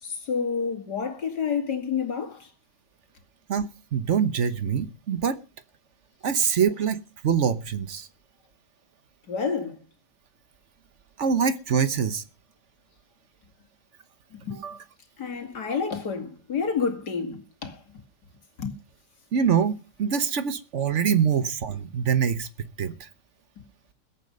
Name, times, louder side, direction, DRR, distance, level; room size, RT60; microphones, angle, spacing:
voice 1, 0.0-2.5 9.3-9.8 14.3-14.7 15.2-18.0 18.6-18.8 23.6-23.7, left 5 dB, 75° left, 2.9 m, -29 dB
voice 2, 3.5-5.4 6.2-8.1 11.2-12.2 14.6-14.8 19.3-23.1, right 7 dB, 50° right, 1.2 m, -25 dB
21.5 x 8.4 x 5.3 m
omnidirectional pair, 1.8 m